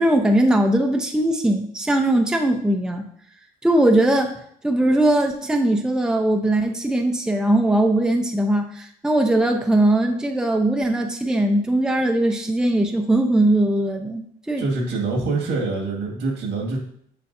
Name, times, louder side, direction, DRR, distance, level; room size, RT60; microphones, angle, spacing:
voice 1, 0.0-3.0 3.6-4.4 4.6-14.7, right 1 dB, 5° right, 3 dB, 0.6 m, -20 dB
voice 2, 14.6-16.8, right 3 dB, 80° right, 1 dB, 1.9 m, -25 dB
6.8 x 6.2 x 2.7 m, 0.65 s
cardioid pair, 110°, 17 cm